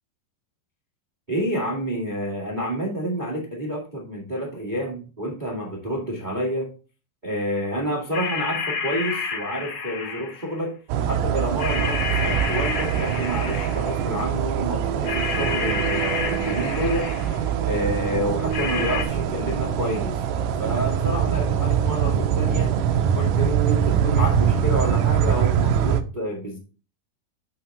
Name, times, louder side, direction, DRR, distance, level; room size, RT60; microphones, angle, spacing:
voice 1, 1.3-6.7 7.2-10.8 11.0-17.1 17.6-20.2 20.6-22.7 23.1-26.6, equal, 40° right, -1 dB, 0.6 m, -29 dB
sound 1, 8.1-10.5 11.6-14.0 15.0-17.5 18.5-19.0, left 5 dB, 50° left, 2.3 m, -30 dB
sound 2, 10.9-26.0, right 8 dB, 80° right, 1.9 m, -23 dB
8.6 x 5.8 x 3.5 m, 0.33 s
omnidirectional pair, 4.7 m